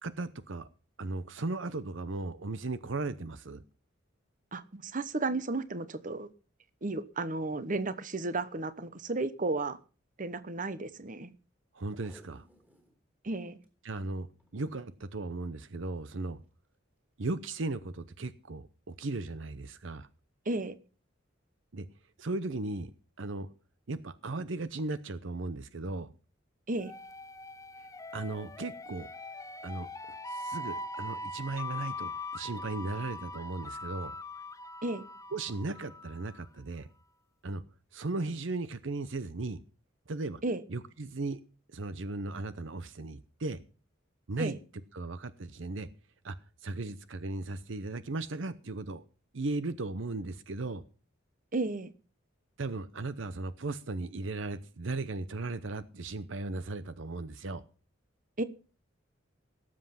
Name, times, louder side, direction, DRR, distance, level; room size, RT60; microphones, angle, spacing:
voice 1, 0.0-0.7 1.0-3.6 11.7-12.5 13.8-14.3 14.5-16.4 17.2-20.1 21.7-21.9 22.2-22.9 23.2-23.5 23.9-26.1 28.1-29.1 29.6-29.9 30.3-34.2 35.3-36.9 37.4-37.6 37.9-39.6 40.1-40.4 40.7-41.4 41.7-43.6 44.3-44.6 44.9-45.9 46.2-46.3 46.6-49.0 49.3-50.8 52.6-57.6, right 2 dB, 65° right, 0.8 m, -36 dB
voice 2, 4.5-6.3 6.8-9.8 10.2-11.3 13.2-13.6 20.5-20.7 26.7-26.9 34.8-35.1 40.4-40.6 44.4-44.6 51.5-51.9 58.4-58.5, right 2 dB, 40° right, 1.0 m, -33 dB
Packing tape duct tape, 11.9-13.0 13.4-13.5 13.6-13.7 14.3-14.6 15.6-15.9 16.4-16.5, right 1 dB, 10° right, 3.6 m, -60 dB
sound 1, 26.8-36.5, left 2 dB, 15° left, 0.6 m, -41 dB
18.0 x 7.7 x 5.9 m
head